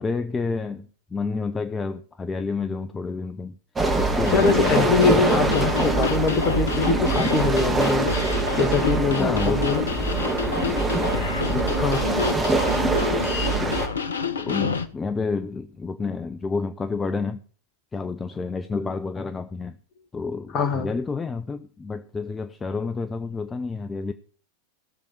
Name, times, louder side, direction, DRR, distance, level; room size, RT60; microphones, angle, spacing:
voice 1, 0.0-3.6 3.9-4.9 9.2-9.7 11.5-11.8 14.4-17.4 17.9-19.8 20.1-24.1, left 4 dB, 15° left, 0.6 m, -29 dB
sound 1, 3.8-13.9, right 3 dB, 15° right, 2.9 m, -24 dB
sound 2, 4.2-14.9, left 5 dB, 70° left, 0.9 m, -28 dB
voice 2, 4.3-8.1 8.6-9.9 11.7-12.0 20.5-20.9, left 4 dB, 35° left, 1.9 m, -23 dB
17.0 x 7.0 x 4.5 m
figure-of-eight pair, 90°, 0 cm